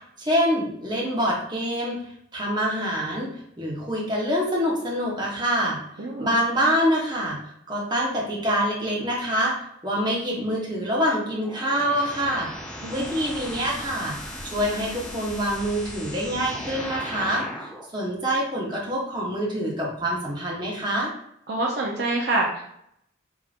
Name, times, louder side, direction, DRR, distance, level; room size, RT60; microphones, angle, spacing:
voice 1, 0.2-2.0 2.3-3.3 3.6-5.8 6.2-9.5 9.8-12.5 12.9-14.1 14.5-21.1, equal, 20° right, -4 dB, 0.9 m, -25 dB
voice 2, 6.0-6.3 12.8-13.1 21.5-22.6, right 2 dB, 55° right, -1 dB, 0.5 m, -26 dB
sound 1, 11.4-17.9, equal, 5° left, 0.4 m, -37 dB
4.8 x 2.8 x 2.4 m, 0.73 s
head